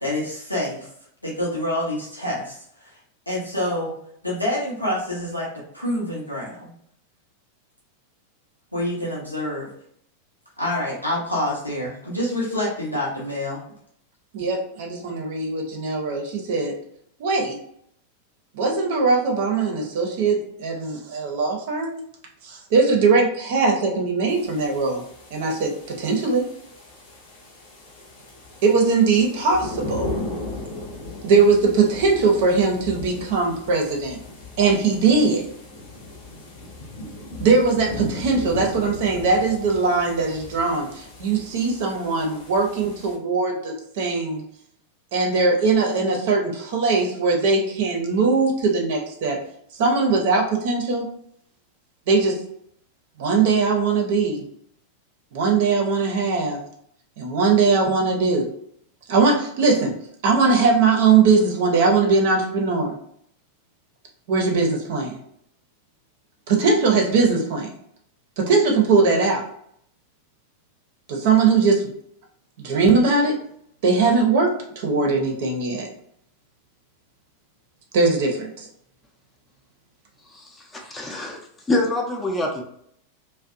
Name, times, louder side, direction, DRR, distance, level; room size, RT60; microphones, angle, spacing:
voice 1, 0.0-0.9 1.2-2.9 3.3-4.0 4.2-5.5 5.7-6.7 8.7-9.7 10.6-13.6, left 1 dB, 85° left, -6 dB, 0.6 m, -27 dB
voice 2, 14.3-16.7 17.2-17.6 18.5-22.0 22.4-25.0 25.3-26.5 28.6-30.1 31.2-34.2 34.6-35.4 37.4-44.4 45.1-49.4 49.8-51.1 52.1-52.4 53.2-54.4 55.3-56.6 57.2-58.5 59.1-59.9 60.2-62.9 64.3-65.2 66.5-67.7 68.4-69.4 71.1-71.8 72.6-73.4 73.8-75.9 77.9-78.7, right 4 dB, 50° right, 1 dB, 0.5 m, -20 dB
sound 1, 24.3-43.2, left 2 dB, 55° left, 0.7 m, -37 dB
voice 3, 80.3-82.6, left 2 dB, 15° left, 1 dB, 0.4 m, -26 dB
2.6 x 2.1 x 2.4 m, 0.68 s
figure-of-eight pair, 90°, 0 cm